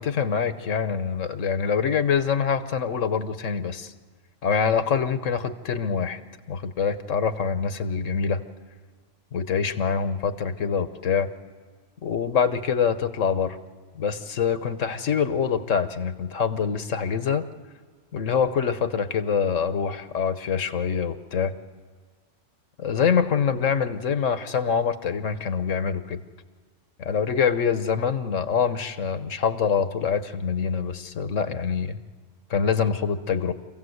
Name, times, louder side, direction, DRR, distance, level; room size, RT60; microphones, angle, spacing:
voice 1, 0.0-3.9 4.4-6.2 6.5-8.4 9.3-11.3 12.0-13.6 13.9-17.4 18.1-21.5 22.8-26.2 27.0-32.0 32.5-33.5, left 6 dB, 80° left, 11 dB, 1.4 m, -25 dB
26.5 x 16.0 x 8.0 m, 1.6 s
omnidirectional pair, 1.3 m